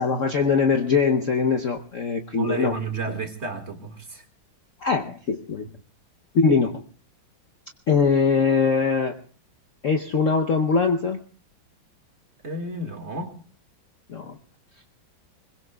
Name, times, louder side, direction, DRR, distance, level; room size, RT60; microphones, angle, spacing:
voice 1, 0.0-2.8 4.8-5.6 6.3-6.7 7.9-9.2 9.8-11.2 14.1-14.4, left 5 dB, 55° left, 0.9 m, -22 dB
voice 2, 2.4-4.3 12.4-13.4, right 3 dB, 35° right, 2.0 m, -31 dB
25.0 x 22.0 x 2.3 m
omnidirectional pair, 2.2 m